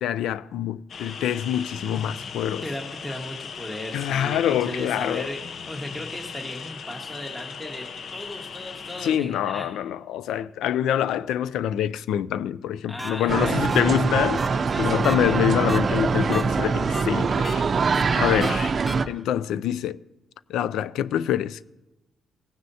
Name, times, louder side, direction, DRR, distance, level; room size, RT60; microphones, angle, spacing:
voice 1, 0.0-2.6 3.9-5.3 9.0-17.6 18.2-18.7 19.1-20.0 20.5-21.7, left 10 dB, 85° left, 0.4 m, -25 dB
sound 1, 0.9-9.2, left 6 dB, 55° left, 0.7 m, -38 dB
voice 2, 2.6-5.4 5.7-9.7 12.9-13.6 14.7-15.4 18.0-18.7, left 1 dB, 15° left, 1.5 m, -36 dB
sound 2, 13.0-13.1 13.7-13.8 14.4-14.5 15.0-15.1 15.7-15.8 16.3-16.4 16.9-17.0 17.4-17.6 17.9-18.0 18.4-18.5 18.9-19.0, right 1 dB, 5° right, 1.1 m, -33 dB
sound 3, 13.3-19.1, right 4 dB, 40° right, 0.5 m, -23 dB
17.5 x 9.5 x 2.8 m
cardioid pair, 90°, 0 cm